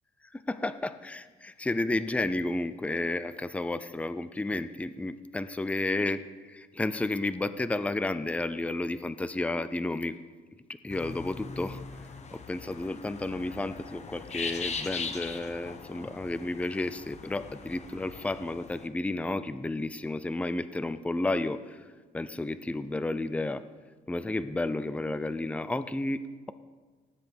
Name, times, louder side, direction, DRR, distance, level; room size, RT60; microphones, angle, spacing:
voice 1, 0.3-10.2 10.7-11.8 12.3-21.8 22.1-23.6 24.1-26.5, left 2 dB, 5° left, 13 dB, 0.5 m, -32 dB
sound 1, 10.9-18.9, left 4 dB, 40° left, 1.1 m, -40 dB
19.0 x 9.9 x 3.5 m, 1.4 s
cardioid pair, 105°, 18 cm